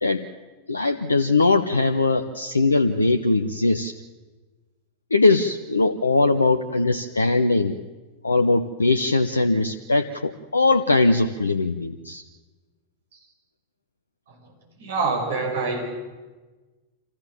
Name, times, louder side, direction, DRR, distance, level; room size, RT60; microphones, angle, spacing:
voice 1, 0.7-3.9 5.1-7.8 8.2-12.2, left 3 dB, 80° left, 7 dB, 0.7 m, -20 dB
voice 2, 14.8-15.8, right 4 dB, 60° right, 0 dB, 5.9 m, -25 dB
26.0 x 15.0 x 7.3 m, 1.3 s
figure-of-eight pair, 90°, 0 cm